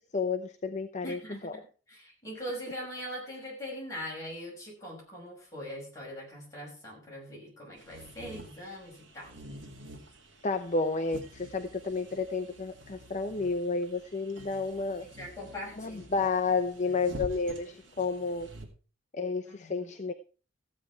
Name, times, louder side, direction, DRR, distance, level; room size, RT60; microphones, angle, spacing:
voice 1, 0.1-1.6 10.4-15.1 15.7-18.5 19.1-20.1, left 4 dB, 35° left, 8 dB, 0.7 m, -31 dB
voice 2, 1.0-1.5 1.9-9.3 15.0-16.0 19.5-19.9, equal, 15° left, -4 dB, 6.0 m, -41 dB
sound 1, 7.8-18.7, equal, 60° right, 2.6 m, -48 dB
14.5 x 8.6 x 4.5 m, 0.37 s
head